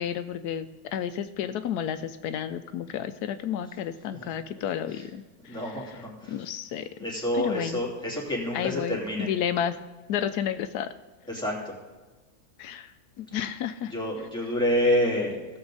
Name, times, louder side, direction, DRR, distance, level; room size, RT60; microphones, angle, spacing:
voice 1, 0.0-5.9 6.3-6.9 7.3-7.8 8.5-9.8 10.1-10.9 12.6-13.9, left 9 dB, 85° left, 10 dB, 1.1 m, -31 dB
voice 2, 5.5-6.4 7.0-9.3 11.3-11.8 13.9-15.4, left 1 dB, 5° left, -4 dB, 2.8 m, -28 dB
17.0 x 7.1 x 3.9 m, 1.2 s
omnidirectional pair, 1.7 m